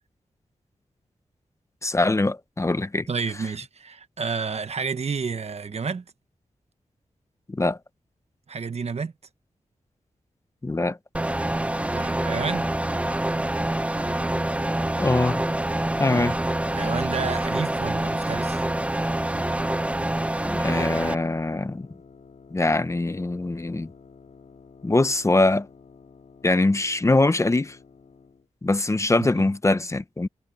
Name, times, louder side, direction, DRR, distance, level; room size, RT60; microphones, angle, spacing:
voice 1, 1.8-3.1 7.5-7.8 10.6-11.0 15.0-15.4 16.0-16.3 20.5-21.9 22.5-23.9 24.8-25.7 26.4-27.8 28.6-30.3, left 2 dB, 25° left, 0.7 m, -23 dB
voice 2, 3.1-6.0 8.5-9.1 11.9-12.7 16.1-16.4 16.7-18.6 29.2-29.5, right 5 dB, 55° right, 1.1 m, -30 dB
sound 1, 11.1-21.1, right 1 dB, 10° right, 0.6 m, -26 dB
sound 2, 13.9-28.5, left 5 dB, 65° left, 2.5 m, -50 dB
wide cardioid pair, 115°, 13 cm